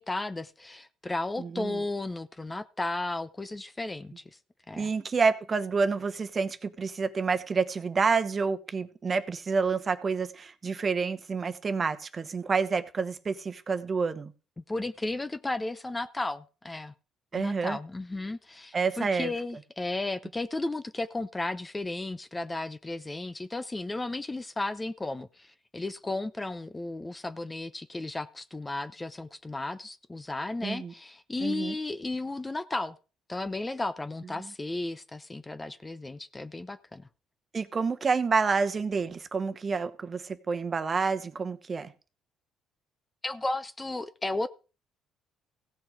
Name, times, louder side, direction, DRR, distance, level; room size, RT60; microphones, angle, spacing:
voice 1, 0.0-4.2 4.7-4.9 14.6-16.9 17.3-33.0 33.3-37.1 43.2-44.5, left 2 dB, 15° left, 0.8 m, -34 dB
voice 2, 1.4-1.8 4.8-14.3 17.3-17.8 18.7-19.3 30.6-30.9 31.4-31.8 37.5-41.9, right 5 dB, 35° right, 1.1 m, -28 dB
16.0 x 6.2 x 5.1 m
cardioid pair, 85°, 0 cm